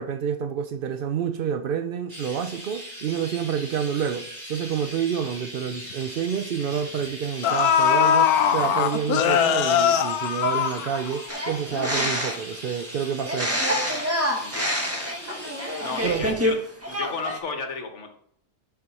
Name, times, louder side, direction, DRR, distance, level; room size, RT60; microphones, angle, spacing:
voice 1, 0.0-13.6 16.0-16.3, right 8 dB, 85° right, 0.4 m, -28 dB
Chirp tweet, 2.1-16.2, equal, 30° right, 3.0 m, -40 dB
sound 1, 5.3-5.4 5.7-5.9 6.9-7.0 7.4-11.4 11.7-11.8, left 8 dB, 80° left, 1.2 m, -21 dB
sound 2, 11.3-12.5 13.2-16.6 16.8-17.4, equal, 10° right, 1.1 m, -27 dB
voice 2, 14.4-15.5 15.8-16.6 16.9-18.1, left 4 dB, 55° left, 1.4 m, -34 dB
12.5 x 4.7 x 4.1 m
omnidirectional pair, 1.6 m